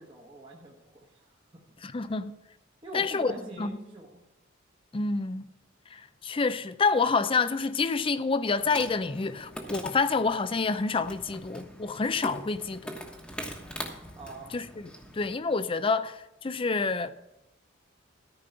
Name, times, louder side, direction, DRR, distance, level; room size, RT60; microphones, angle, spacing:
voice 1, 0.0-1.4 2.8-4.2 14.2-14.7, right 1 dB, 25° right, 1.2 m, -44 dB
voice 2, 1.8-2.3 2.9-3.3 3.6-3.7 4.9-5.5 5.9-12.9 14.5-17.1, left 4 dB, 25° left, 0.4 m, -28 dB
Insect, 8.6-15.4, equal, 5° left, 1.2 m, -42 dB
13.5 x 5.4 x 6.8 m
head